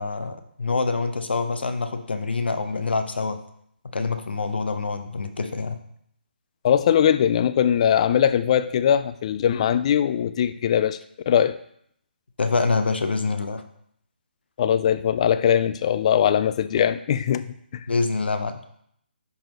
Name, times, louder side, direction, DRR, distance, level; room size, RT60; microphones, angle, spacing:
voice 1, 0.0-3.4 3.9-5.8 12.4-13.6 17.9-18.6, left 4 dB, 75° left, 8 dB, 0.8 m, -25 dB
voice 2, 6.6-11.0 11.3-11.6 14.6-17.5 17.7-17.9, left 9 dB, 35° left, 12 dB, 0.4 m, -21 dB
11.0 x 3.9 x 3.0 m, 0.69 s
figure-of-eight pair, 145°, 6 cm